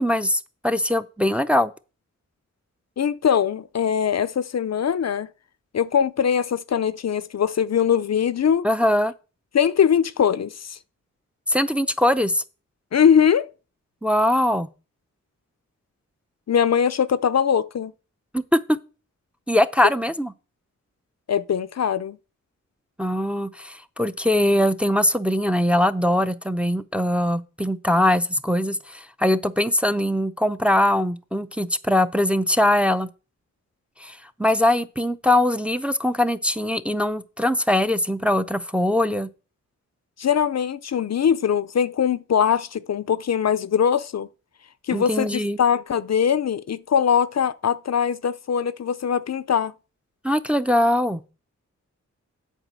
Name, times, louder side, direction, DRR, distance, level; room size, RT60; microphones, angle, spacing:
voice 1, 0.0-1.7 8.6-9.1 11.5-12.4 14.0-14.7 18.3-18.8 19.5-20.3 23.0-33.1 34.0-39.3 44.9-45.6 50.2-51.2, left 1 dB, 5° right, 0.5 m, -21 dB
voice 2, 3.0-5.3 5.7-8.7 9.5-10.8 12.9-13.5 16.5-17.9 21.3-22.2 40.2-44.3 44.9-49.7, left 8 dB, 60° left, 0.5 m, -21 dB
8.1 x 4.8 x 7.4 m
wide cardioid pair, 105°, 31 cm